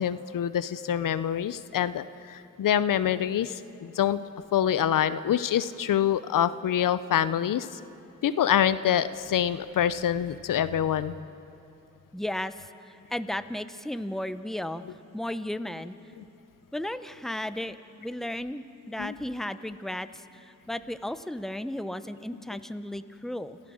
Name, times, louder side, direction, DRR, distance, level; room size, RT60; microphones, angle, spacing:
voice 1, 0.0-4.2 4.5-7.8 8.2-11.2 16.2-16.3 19.0-19.2, left 10 dB, 80° left, 14 dB, 0.6 m, -26 dB
voice 2, 12.1-14.8 15.1-16.0 16.7-23.6, left 1 dB, ahead, 11 dB, 0.8 m, -34 dB
29.5 x 14.0 x 6.4 m, 2.9 s
cardioid pair, 60°, 32 cm